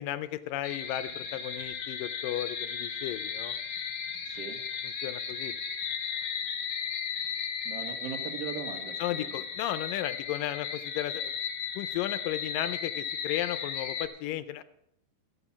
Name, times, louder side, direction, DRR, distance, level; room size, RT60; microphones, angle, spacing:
voice 1, 0.0-3.6 4.8-5.5 9.0-11.3 11.8-14.6, left 13 dB, 80° left, 13 dB, 2.2 m, -34 dB
sound 1, 0.6-14.1, left 7 dB, 55° left, 2.1 m, -35 dB
voice 2, 4.3-4.6 7.6-9.4, right 8 dB, 55° right, 7 dB, 1.8 m, -39 dB
13.5 x 8.9 x 7.0 m, 0.77 s
omnidirectional pair, 4.1 m